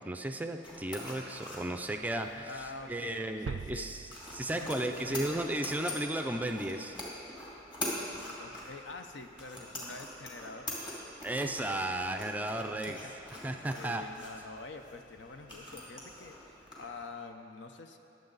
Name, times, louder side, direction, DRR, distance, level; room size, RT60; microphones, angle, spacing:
voice 1, 0.0-2.5 2.9-7.0 11.2-13.0 13.4-14.0, right 1 dB, 10° right, 6 dB, 0.4 m, -34 dB
sound 1, 0.6-17.1, left 1 dB, 25° left, 2.5 m, -44 dB
voice 2, 2.4-3.9 4.5-5.4 8.4-10.8 12.7-13.1 13.4-18.0, left 3 dB, 75° left, 6 dB, 0.8 m, -46 dB
sound 2, 3.5-5.5, right 5 dB, 80° right, 0.3 m, -43 dB
22.0 x 7.7 x 4.0 m, 2.9 s
head